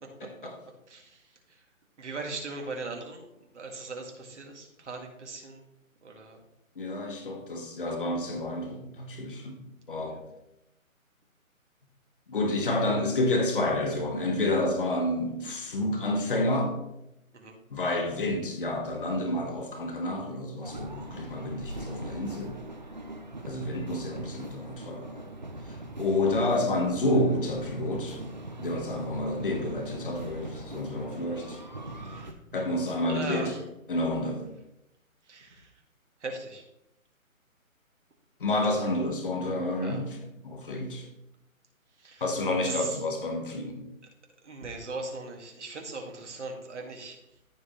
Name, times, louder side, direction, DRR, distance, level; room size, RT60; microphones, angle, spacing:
voice 1, 0.2-0.6 6.8-9.6 9.9-10.2 12.3-16.7 17.7-22.5 23.4-25.3 26.0-28.2 28.6-31.6 32.5-33.5 33.9-34.4 38.4-40.2 40.4-41.0 42.2-43.8, left 1 dB, 40° left, 4 dB, 1.5 m, -29 dB
voice 2, 0.9-1.2 2.0-3.3 3.5-5.7 6.0-6.4 9.9-10.0 17.3-17.6 31.9-32.3 33.1-33.6 35.3-35.7 36.2-36.6 39.8-40.0 42.0-42.2 42.6-43.0 44.4-47.2, right 3 dB, 55° right, 2 dB, 2.2 m, -39 dB
sound 1, 20.6-32.3, right 2 dB, 35° right, 0.6 m, -41 dB
14.0 x 5.1 x 3.2 m, 0.87 s
hypercardioid pair, 170°, 42 cm